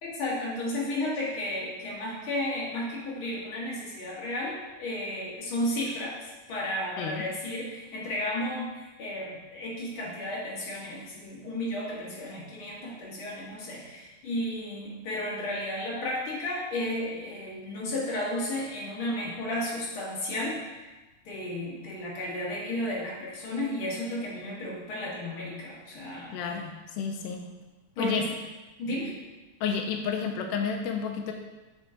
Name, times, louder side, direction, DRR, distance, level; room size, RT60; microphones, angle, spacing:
voice 1, 0.0-20.9 21.3-26.6 28.0-28.2 28.8-29.1, left 1 dB, 50° left, -5 dB, 2.1 m, -33 dB
voice 2, 26.3-27.4 28.0-28.2 29.6-31.3, left 6 dB, 90° left, 3 dB, 1.3 m, -31 dB
7.3 x 4.6 x 3.8 m, 1.1 s
omnidirectional pair, 3.3 m